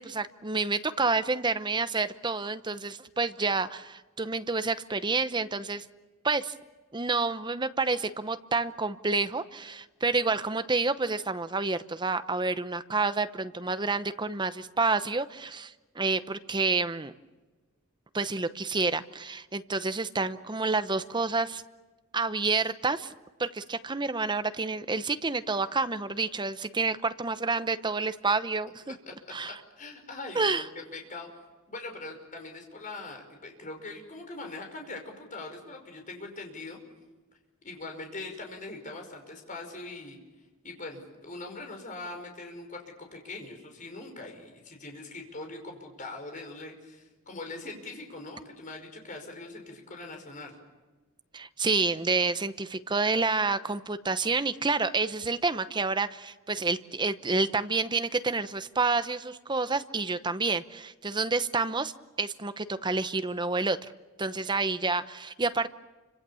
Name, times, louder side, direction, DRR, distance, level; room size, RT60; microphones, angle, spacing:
voice 1, 0.0-5.8 6.2-6.5 6.9-17.1 18.1-21.6 22.1-23.1 23.4-28.9 29.3-29.6 30.3-30.6 51.3-61.9 62.2-63.9 64.2-65.7, right 3 dB, 20° right, 11 dB, 0.9 m, -29 dB
voice 2, 29.5-31.3 31.7-36.8 37.6-40.2 40.6-50.5, left 2 dB, 35° left, 3 dB, 5.5 m, -42 dB
29.0 x 26.0 x 7.1 m, 1.2 s
head